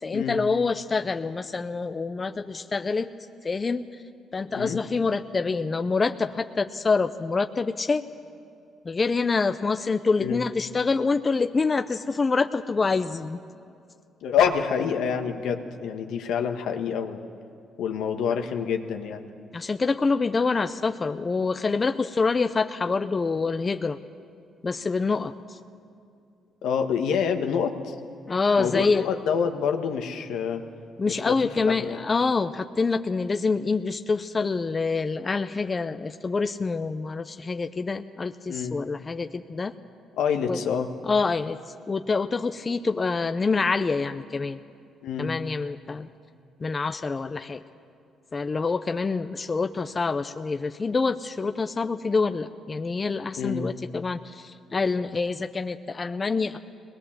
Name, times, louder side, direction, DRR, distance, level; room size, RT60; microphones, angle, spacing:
voice 1, 0.0-3.1 3.4-3.9 4.3-8.0 8.8-13.4 19.5-24.0 24.6-25.6 28.3-29.1 31.0-39.7 40.5-40.6 41.0-41.6 41.9-44.6 45.2-46.1 46.6-47.6 48.3-56.6, left 4 dB, 30° left, 8 dB, 0.6 m, -26 dB
voice 2, 14.2-17.2 17.8-19.3 26.6-27.9 28.6-30.6 31.1-31.4 31.6-32.0 38.5-38.7 40.1-40.9 45.0-45.3 53.3-53.7, left 7 dB, 85° left, 5 dB, 1.4 m, -27 dB
21.5 x 19.5 x 7.4 m, 2.5 s
cardioid pair, 90°, 0 cm